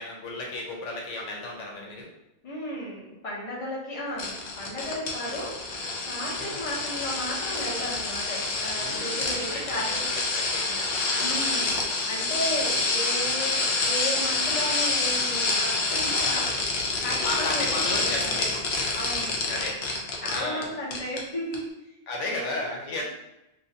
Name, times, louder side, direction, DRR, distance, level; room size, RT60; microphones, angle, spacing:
voice 1, 0.0-2.1 6.3-6.7 8.8-9.8 10.1-11.5 15.9-16.2 17.2-18.6 19.4-19.8 20.3-20.7 22.1-23.0, left 2 dB, 90° left, -1 dB, 1.0 m, -34 dB
voice 2, 2.4-5.6 6.0-10.0 11.1-11.8 12.1-16.5 17.0-18.5 18.9-19.7 20.2-21.7 22.2-22.5, equal, 35° left, -5 dB, 0.8 m, -34 dB
sound 1, 4.2-20.6 20.9-21.2 21.5-21.6, left 3 dB, 70° left, 0.8 m, -27 dB
2.7 x 2.2 x 2.6 m, 0.92 s
omnidirectional pair, 1.2 m